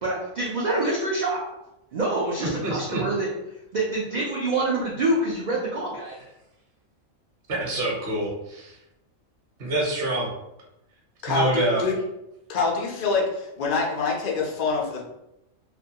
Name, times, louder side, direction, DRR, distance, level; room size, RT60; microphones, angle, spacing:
voice 1, 0.0-1.4 1.9-3.3 3.7-6.3, right 2 dB, 85° right, -5 dB, 0.3 m, -26 dB
voice 2, 2.6-3.0 7.5-8.7 9.6-10.3 11.3-11.8, right 1 dB, 50° right, -3 dB, 0.9 m, -26 dB
voice 3, 11.2-12.0 12.5-15.0, left 4 dB, 75° left, -2 dB, 0.4 m, -25 dB
2.4 x 2.2 x 2.7 m, 0.89 s
omnidirectional pair, 1.4 m